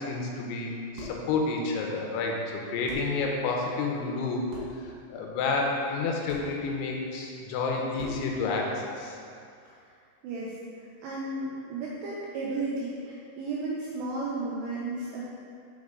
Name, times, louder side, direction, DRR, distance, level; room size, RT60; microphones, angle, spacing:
voice 1, 0.0-4.4 5.1-9.2, left 3 dB, 85° left, 0 dB, 3.0 m, -30 dB
sound 1, 1.0-1.3 2.5-2.6 2.9-3.2 4.5-4.8 6.3-6.5 8.0-8.3, right 1 dB, 65° right, 2.6 m, -42 dB
voice 2, 10.2-15.2, right 2 dB, 90° right, -6 dB, 2.4 m, -34 dB
6.4 x 4.7 x 3.5 m, 2.4 s
omnidirectional pair, 5.4 m